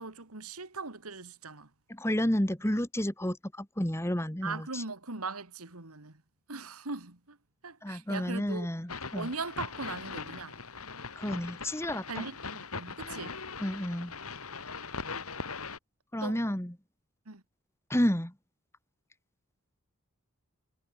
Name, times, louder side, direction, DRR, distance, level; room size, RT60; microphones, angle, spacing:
voice 1, 0.0-1.7 4.4-6.2 6.5-7.4 7.6-8.7 9.1-10.6 12.1-13.3 16.2-16.4 17.3-17.4, right 3 dB, 85° right, 2.6 m, -39 dB
voice 2, 1.9-4.8 7.8-9.3 11.1-12.2 13.6-14.1 16.1-16.7 17.9-18.3, equal, 10° left, 1.7 m, -31 dB
sound 1, 8.9-15.8, left 4 dB, 85° left, 4.0 m, -40 dB
head